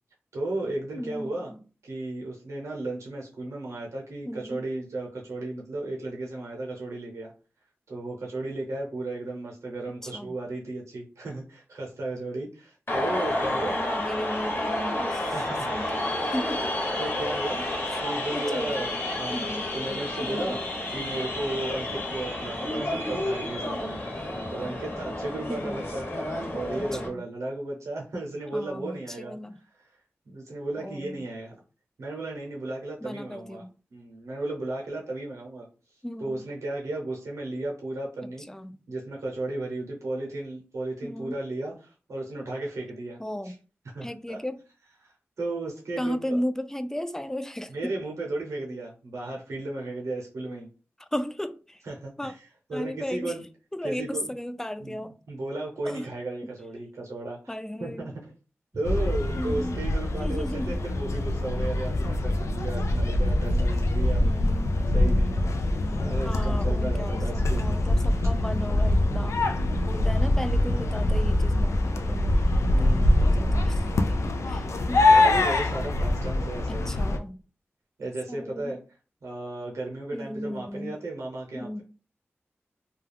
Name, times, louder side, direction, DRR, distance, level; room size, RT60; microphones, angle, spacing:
voice 1, 0.3-1.5 1.8-7.3 7.9-13.8 15.3-15.9 17.0-17.7 18.0-19.5 19.7-20.6 20.9-24.0 24.5-26.1 26.5-29.4 29.7-29.9 30.3-31.6 32.0-33.6 33.9-35.7 36.2-38.4 38.9-43.5 43.9-44.4 45.0-46.4 47.7-50.7 51.8-53.4 53.8-54.3 54.8-58.3 58.7-64.2 64.9-65.6 65.9-67.8 69.4-69.9 72.7-73.2 75.1-76.9 78.0-78.8 79.2-81.8, right 2 dB, 90° right, 0.7 m, -35 dB
voice 2, 0.9-1.6 4.3-4.6 10.0-10.3 13.5-15.3 15.7-16.7 17.9-18.0 18.3-18.8 19.3-19.7 20.2-20.6 25.5-25.8 26.9-27.2 28.5-29.6 30.8-31.2 33.0-33.7 36.0-36.5 38.5-38.7 41.0-41.4 43.2-43.5 44.0-44.6 46.0-47.9 51.1-51.8 52.2-52.3 52.7-53.4 53.7-55.1 55.9-56.1 57.5-58.1 59.4-59.8 60.1-60.8 64.2-64.8 66.2-69.4 69.9-72.3 72.7-75.1 76.7-77.4 78.3-78.8 80.1-81.0 81.5-81.8, equal, 10° left, 0.3 m, -35 dB
sound 1, 12.9-27.1, left 1 dB, 50° left, 1.1 m, -30 dB
sound 2, 58.8-77.2, left 1 dB, 85° left, 0.3 m, -24 dB
2.3 x 2.2 x 3.3 m
cardioid pair, 45°, 5 cm